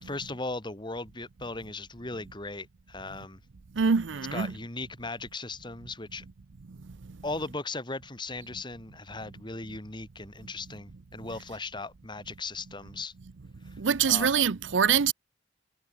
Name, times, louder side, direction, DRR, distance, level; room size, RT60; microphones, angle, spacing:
voice 1, 0.0-3.4 4.3-6.2 7.2-13.1 14.0-14.3, left 3 dB, 25° left, 2.6 m, -37 dB
voice 2, 3.8-4.5 13.8-15.1, right 6 dB, 75° right, 0.6 m, -24 dB
head